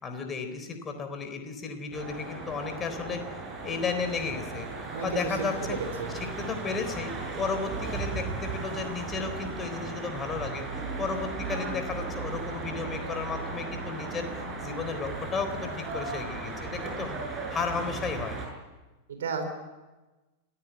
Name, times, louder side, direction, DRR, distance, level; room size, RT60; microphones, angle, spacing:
voice 1, 0.0-3.3 3.6-4.7 5.0-5.8 6.1-10.7 11.0-14.3 14.6-17.2 17.5-18.4, left 5 dB, 20° left, 7 dB, 3.9 m, -33 dB
sound 1, 1.9-18.5, right 3 dB, 20° right, 7.1 m, -36 dB
voice 2, 4.9-5.3 5.6-6.1 19.1-19.4, right 6 dB, 65° right, 6 dB, 4.2 m, -33 dB
26.0 x 15.5 x 9.3 m, 1.2 s
figure-of-eight pair, 90°, 0 cm